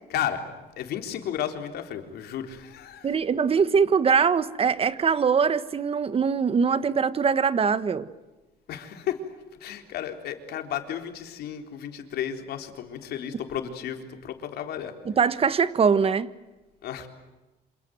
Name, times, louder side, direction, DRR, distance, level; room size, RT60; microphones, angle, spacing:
voice 1, 0.1-0.4 0.8-3.2 8.7-9.2 9.6-15.0 16.8-17.1, left 10 dB, 70° left, 4.0 m, -33 dB
voice 2, 3.0-8.1 15.0-16.3, right 6 dB, 35° right, 1.4 m, -22 dB
27.5 x 27.0 x 8.0 m
cardioid pair, 110°, 17 cm